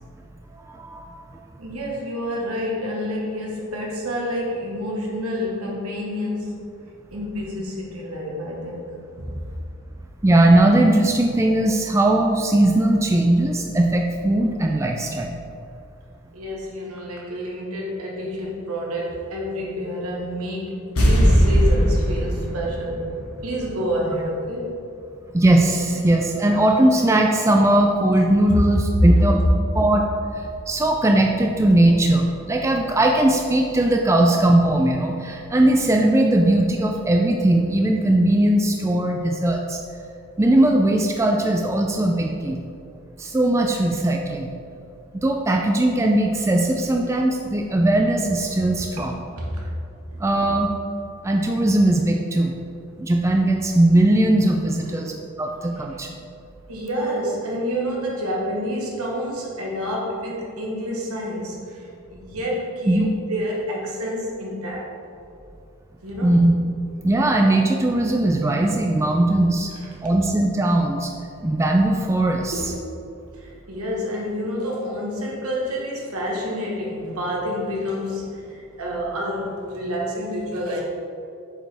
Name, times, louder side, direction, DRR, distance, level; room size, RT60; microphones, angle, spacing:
voice 1, 0.6-1.0 10.2-15.4 25.3-29.4 29.7-30.1 30.7-39.8 40.4-42.6 43.2-44.5 45.2-49.1 50.2-50.7 51.2-52.6 53.0-55.1 55.4-56.2 62.9-63.1 66.2-66.5 67.0-69.7 70.0-71.1 71.4-72.6, right 1 dB, 15° right, 2 dB, 0.3 m, -19 dB
voice 2, 1.6-6.7 7.1-9.4 16.3-23.0 23.4-24.8 25.9-26.0 26.4-26.5 49.0-49.7 50.1-50.2 54.8-55.2 56.7-65.0 66.0-66.5 69.8-70.0 72.5-72.9 73.3-80.8, equal, 80° right, -2 dB, 1.3 m, -29 dB
sound 1, 21.0-24.2 24.4-24.5, equal, 80° left, 1.4 m, -19 dB
7.4 x 5.1 x 3.4 m, 2.5 s
head